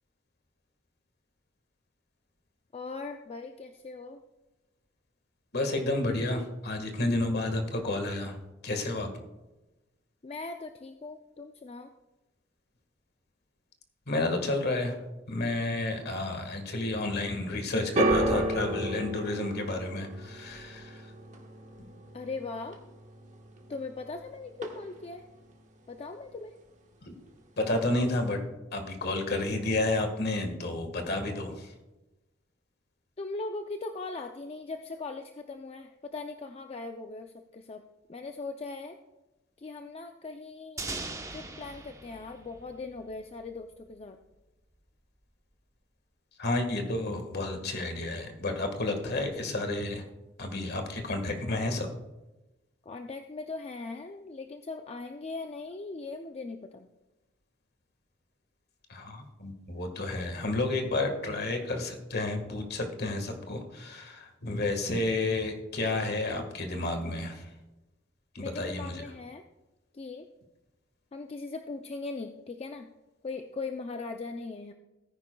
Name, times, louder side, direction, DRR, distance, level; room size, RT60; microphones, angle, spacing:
voice 1, 2.7-4.2 10.2-11.9 22.1-22.8 23.7-25.2 25.9-26.5 33.2-37.8 38.1-39.0 39.6-40.9 41.3-44.2 52.9-56.9 68.4-69.4 69.9-70.3 71.1-72.9 73.2-74.7, left 3 dB, 30° left, 6 dB, 0.4 m, -39 dB
voice 2, 5.5-8.4 8.6-9.2 14.1-15.0 15.3-21.1 27.0-27.1 27.6-28.4 28.7-31.7 46.4-50.0 50.4-51.9 58.9-67.5 68.3-69.0, left 2 dB, 55° left, 5 dB, 1.6 m, -31 dB
sound 1, 18.0-24.2 24.5-25.2 25.9-26.0, right 1 dB, 40° right, 1.3 m, -33 dB
sound 2, 40.8-43.6, right 3 dB, 15° right, 0.9 m, -40 dB
17.5 x 9.8 x 2.3 m, 1.1 s
head